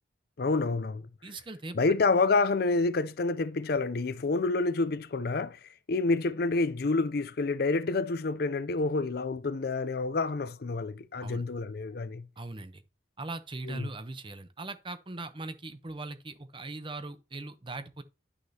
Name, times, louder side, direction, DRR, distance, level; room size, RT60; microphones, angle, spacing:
voice 1, 0.4-1.0 1.7-5.6 5.9-12.3 13.7-13.9, left 3 dB, 55° left, 0.5 m, -28 dB
voice 2, 1.2-1.8 11.2-11.4 12.4-12.8 13.2-18.0, right 2 dB, 25° right, 0.8 m, -40 dB
10.5 x 6.4 x 2.8 m
head